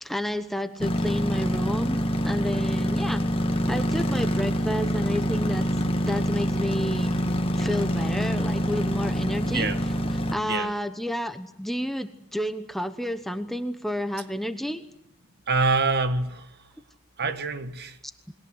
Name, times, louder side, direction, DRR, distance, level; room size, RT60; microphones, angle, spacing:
voice 1, 0.0-3.2 3.7-5.7 6.0-7.2 7.6-9.7 10.3-14.8, equal, ahead, 1.0 m, -30 dB
sound 1, 0.8-10.3, equal, 25° left, 2.0 m, -26 dB
voice 2, 15.5-16.6 17.2-18.0, right 3 dB, 50° right, 1.8 m, -25 dB
29.5 x 22.0 x 8.0 m
head